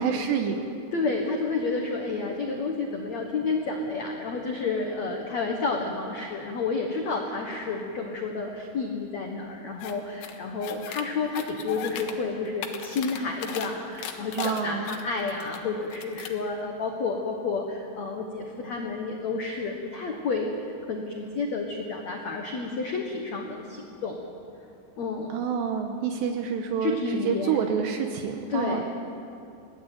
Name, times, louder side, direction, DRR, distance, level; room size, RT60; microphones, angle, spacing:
voice 1, 0.0-0.7 14.4-14.9 25.3-27.0 27.2-28.9, right 7 dB, 75° right, 5 dB, 3.0 m, -28 dB
voice 2, 0.9-24.2 25.0-25.4 26.8-27.6 28.5-28.9, left 4 dB, 70° left, 2 dB, 1.6 m, -30 dB
sound 1, 9.8-9.9 10.2-11.0 11.3-12.1 12.5-13.7 14.0-15.6 15.9-16.4, left 9 dB, 90° left, 3.8 m, -37 dB
21.5 x 16.5 x 9.1 m, 2.6 s
omnidirectional pair, 5.4 m